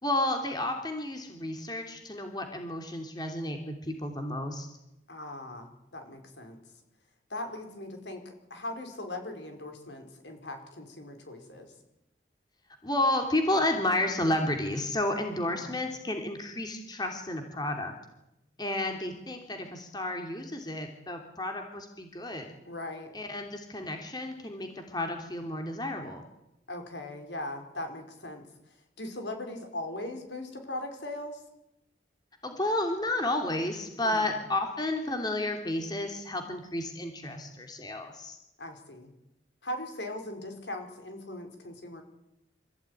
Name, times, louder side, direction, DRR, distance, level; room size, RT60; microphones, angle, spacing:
voice 1, 0.0-4.7 12.8-17.9 18.6-22.5 23.1-26.2 32.4-38.4, left 1 dB, 20° left, 4 dB, 2.9 m, -31 dB
voice 2, 5.1-6.6 7.3-11.7 15.4-15.8 22.7-23.1 26.7-28.5 29.0-31.4 34.0-34.4 38.6-39.1 39.6-42.0, left 1 dB, 75° left, 5 dB, 5.2 m, -39 dB
26.0 x 15.5 x 9.9 m, 0.87 s
head